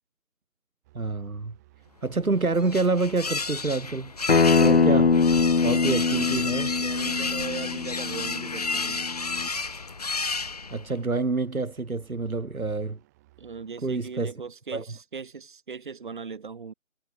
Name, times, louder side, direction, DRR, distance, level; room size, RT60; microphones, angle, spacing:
sound 1, 0.8-13.9, right 19 dB, 10° right, 5.6 m, -59 dB
voice 1, 0.9-1.5 2.0-4.1 4.6-5.3 5.6-6.7 10.7-13.0 13.8-14.3 14.7-14.8, right 3 dB, 90° right, 2.8 m, -27 dB
sound 2, 2.1-11.0, left 4 dB, 30° left, 1.2 m, -32 dB
Acoustic guitar, 4.3-9.5, left 4 dB, 50° left, 0.6 m, -23 dB
voice 2, 6.8-9.1 13.4-16.7, right 5 dB, 35° right, 3.6 m, -39 dB
figure-of-eight pair, 170°, 41 cm